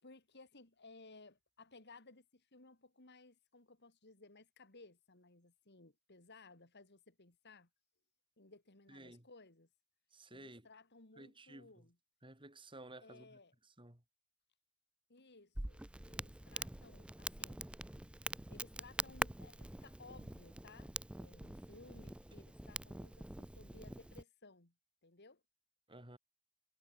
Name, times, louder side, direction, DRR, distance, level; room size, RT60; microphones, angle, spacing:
voice 1, 0.0-7.7 8.4-9.7 10.3-12.0 13.0-13.5 15.1-17.6 18.5-24.7 25.0-25.4, left 3 dB, 50° left, 2.9 m, -60 dB
voice 2, 8.9-9.3 10.1-10.7 11.2-11.7 12.2-13.4 13.8-14.0 25.9-26.2, right 2 dB, 25° right, 4.0 m, -54 dB
Crackle, 15.5-24.2, right 1 dB, 5° right, 0.3 m, -45 dB
head